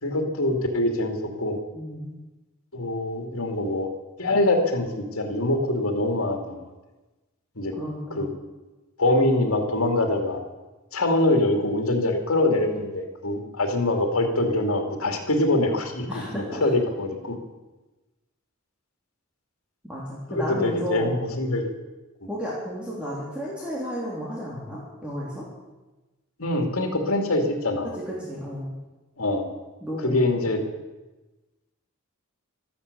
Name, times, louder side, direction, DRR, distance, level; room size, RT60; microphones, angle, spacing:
voice 1, 0.0-1.6 2.7-3.9 4.2-6.6 7.6-7.7 8.2-8.3 9.0-10.4 10.9-17.4 20.3-21.7 26.4-27.9 29.2-29.5 30.0-30.6, left 1 dB, 80° left, 4 dB, 2.6 m, -24 dB
voice 2, 1.7-2.1 7.8-8.2 16.1-16.7 19.8-21.1 22.3-25.4 27.8-28.7 29.8-30.5, equal, 5° right, -6 dB, 3.1 m, -33 dB
13.0 x 12.5 x 8.4 m, 1.1 s
head